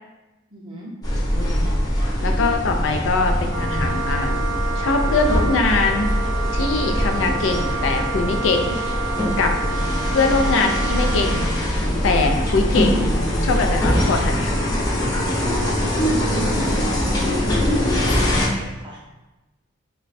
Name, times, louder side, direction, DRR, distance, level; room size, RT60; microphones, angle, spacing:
voice 1, 0.5-0.9 15.3-19.0, right 2 dB, 25° right, -3 dB, 0.6 m, -36 dB
sound 1, 1.0-18.5, equal, 20° left, 0.6 m, -22 dB
voice 2, 1.3-1.8 2.2-4.4 4.8-6.1 6.5-8.8 9.4-9.5 10.1-11.5 12.0-14.6, left 3 dB, 65° left, 4 dB, 0.4 m, -22 dB
Wind instrument woodwind instrument, 3.5-11.5, right 4 dB, 70° right, 0.5 m, -29 dB
3.1 x 2.2 x 4.0 m, 1.0 s
head